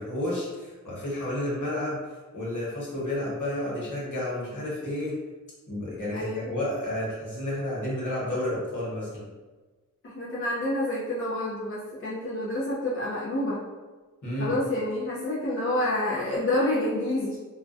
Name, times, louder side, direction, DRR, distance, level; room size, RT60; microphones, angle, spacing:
voice 1, 0.0-2.0 2.3-5.1 5.7-9.2 14.2-14.5, left 1 dB, 65° left, -7 dB, 1.1 m, -31 dB
voice 2, 6.1-6.6 10.0-13.6 14.4-17.4, left 1 dB, 40° left, -7 dB, 0.5 m, -28 dB
2.4 x 2.1 x 2.5 m, 1.3 s
wide cardioid pair, 50°, 33 cm